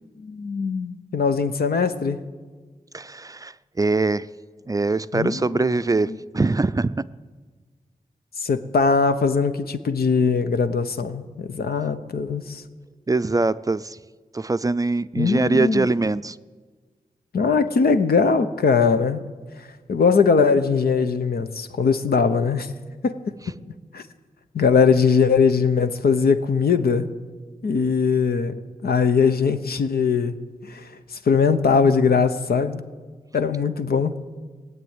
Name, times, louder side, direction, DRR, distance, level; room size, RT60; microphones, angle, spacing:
voice 1, 0.2-2.2 5.1-6.2 8.4-12.6 15.2-15.9 17.3-19.2 19.6-22.7 23.0-23.2 23.9-24.0 24.5-27.1 27.6-28.5 28.8-30.4 30.6-32.8 33.3-34.2, left 5 dB, 90° left, 9 dB, 0.9 m, -21 dB
voice 2, 2.9-4.3 4.7-7.0 13.1-14.0 14.3-16.4, right 3 dB, 25° right, 14 dB, 0.4 m, -23 dB
19.0 x 7.7 x 9.5 m, 1.4 s
wide cardioid pair, 90°, 15 cm